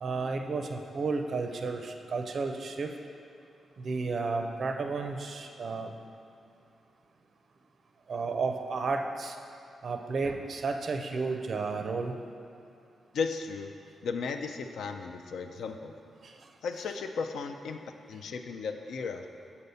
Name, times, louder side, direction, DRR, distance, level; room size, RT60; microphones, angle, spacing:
voice 1, 0.0-2.9 3.8-5.9 8.1-9.4 9.8-12.1 16.2-16.3, right 4 dB, 55° right, 5 dB, 0.4 m, -32 dB
voice 2, 13.1-13.7 14.0-15.9 16.6-17.8 18.1-19.2, left 5 dB, 85° left, 6 dB, 0.4 m, -35 dB
6.9 x 4.1 x 5.4 m, 2.6 s
cardioid pair, 90°, 0 cm